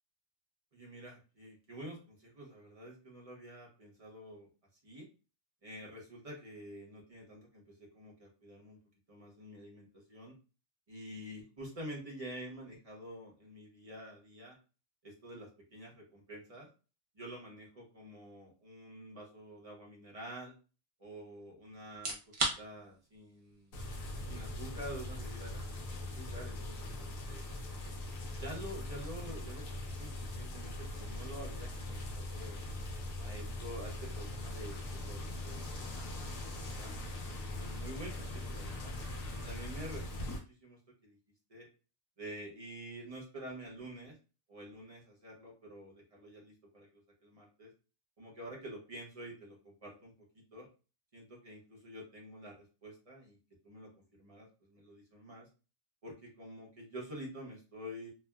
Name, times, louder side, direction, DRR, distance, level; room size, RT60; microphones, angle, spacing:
voice 1, 0.7-4.5 4.8-5.1 5.6-8.8 9.1-10.3 10.9-14.6 15.0-16.7 17.1-20.5 21.0-23.8 24.3-27.5 28.4-32.6 33.2-36.2 36.6-36.9 37.5-38.9 39.3-41.2 41.5-41.7 42.2-44.2 44.5-47.7 48.2-50.7 51.1-53.4 53.6-55.5 56.0-58.1, right 1 dB, 30° right, -3 dB, 0.8 m, -48 dB
sound 1, 21.9-36.7, right 2 dB, 60° right, 0.3 m, -46 dB
sound 2, 23.7-40.4, left 2 dB, 70° left, 1.1 m, -41 dB
3.1 x 2.1 x 2.2 m, 0.33 s
omnidirectional pair, 1.5 m